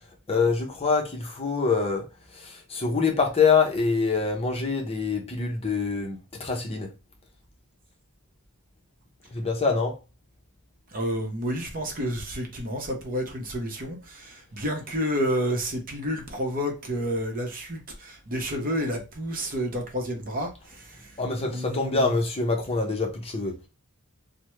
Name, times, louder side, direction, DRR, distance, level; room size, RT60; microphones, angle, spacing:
voice 1, 0.3-2.0 2.3-6.9 9.3-10.0 21.2-23.6, left 4 dB, 30° left, 0.6 m, -25 dB
voice 2, 10.9-21.0 21.5-22.2, equal, 40° right, 0.8 m, -30 dB
3.3 x 2.1 x 3.0 m
head